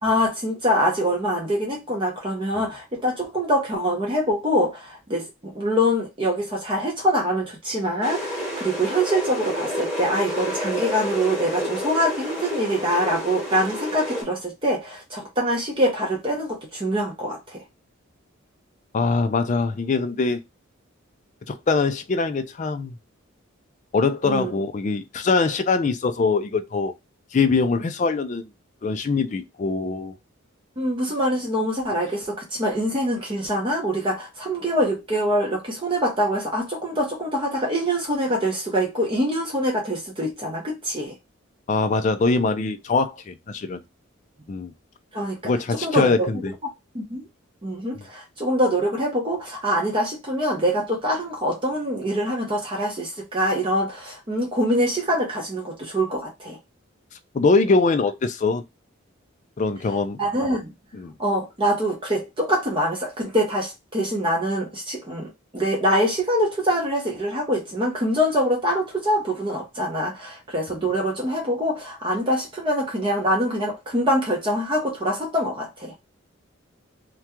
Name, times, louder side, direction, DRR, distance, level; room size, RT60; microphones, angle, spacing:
voice 1, 0.0-17.6 24.3-24.5 30.8-41.2 45.1-45.4 45.7-47.3 47.6-56.6 60.2-60.7 61.2-75.9, equal, 25° right, 0.6 m, -24 dB
sound 1, 8.0-14.2, equal, 5° right, 1.1 m, -29 dB
voice 2, 18.9-20.4 21.5-22.9 23.9-26.9 27.3-28.4 28.8-30.1 41.7-43.8 44.5-44.7 45.4-46.5 57.3-58.6 59.6-60.2 60.9-61.1, left 4 dB, 35° left, 0.3 m, -22 dB
2.3 x 2.2 x 2.8 m
head